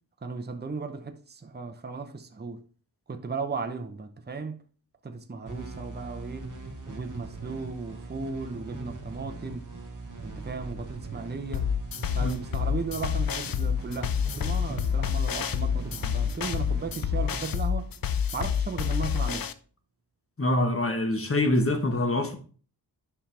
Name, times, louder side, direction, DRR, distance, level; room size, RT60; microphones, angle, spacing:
voice 1, 0.2-2.6 3.1-4.6 5.0-6.5 6.9-9.7 10.2-11.7 12.1-17.9 18.3-19.5, right 4 dB, 25° right, 0.8 m, -36 dB
sound 1, 5.4-18.8, right 3 dB, 45° right, 1.9 m, -41 dB
sound 2, 11.5-19.5, left 8 dB, 55° left, 0.6 m, -28 dB
voice 2, 20.4-22.4, left 1 dB, 30° left, 1.3 m, -25 dB
10.0 x 5.8 x 3.3 m
wide cardioid pair, 85°, 43 cm